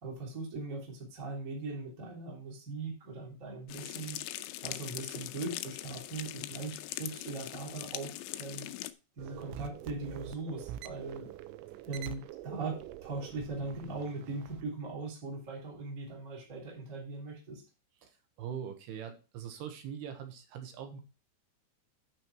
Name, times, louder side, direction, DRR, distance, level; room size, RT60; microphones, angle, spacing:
voice 1, 0.0-4.2 4.6-8.7 9.2-11.3 11.8-17.6, right 3 dB, 20° right, -2 dB, 2.9 m, -40 dB
sound 1, 3.7-8.9, left 15 dB, 85° left, 3.0 m, -41 dB
Piano, 6.3-7.3, left 4 dB, 70° left, 2.6 m, -54 dB
sound 2, 9.2-14.6, right 12 dB, 85° right, 3.0 m, -45 dB
voice 2, 18.4-21.0, right 8 dB, 70° right, 5 dB, 3.1 m, -42 dB
11.5 x 5.5 x 4.6 m, 0.32 s
omnidirectional pair, 5.4 m